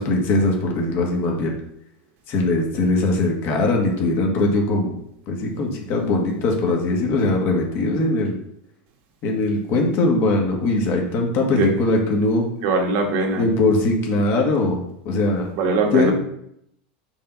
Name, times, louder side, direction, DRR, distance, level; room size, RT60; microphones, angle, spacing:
voice 1, 0.0-1.5 2.3-4.9 5.3-8.4 9.2-12.4 13.4-14.8 15.1-15.5 15.9-16.1, left 2 dB, 45° left, 1 dB, 1.8 m, -20 dB
voice 2, 12.6-13.4 15.5-16.1, right 3 dB, 55° right, 2 dB, 1.5 m, -21 dB
5.4 x 3.8 x 5.6 m, 0.72 s
supercardioid pair, 130°, 5 cm